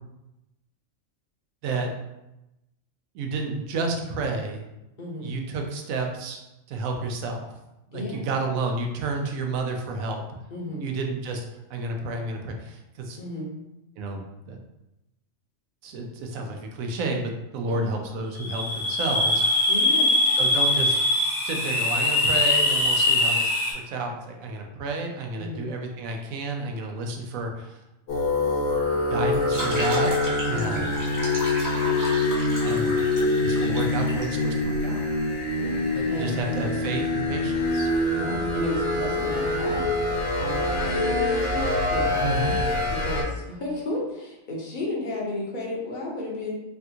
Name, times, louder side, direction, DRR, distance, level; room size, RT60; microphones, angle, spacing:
voice 1, 3.1-4.6 5.2-6.4 6.7-7.5 7.9-10.4 10.8-11.4 11.7-13.2 14.0-14.6 15.8-19.4 20.4-21.0 21.4-27.8 28.9-31.0 31.7-32.0 32.5-33.0 33.4-35.0 35.9-37.9 42.2-42.6, right 3 dB, 90° right, 3 dB, 1.0 m, -31 dB
voice 2, 5.0-5.3 7.9-8.3 10.5-10.9 13.2-13.5 17.7-17.9 19.7-20.1 25.4-25.6 30.5-30.8 35.6-36.7 38.1-46.6, left 1 dB, 45° left, -3 dB, 0.8 m, -33 dB
sound 1, 18.4-23.7, left 2 dB, 90° left, 1.3 m, -22 dB
sound 2, 28.1-43.2, left 2 dB, 60° left, 1.3 m, -25 dB
sound 3, 29.3-34.2, equal, 25° right, 0.4 m, -34 dB
3.4 x 2.3 x 2.7 m, 0.93 s
omnidirectional pair, 1.4 m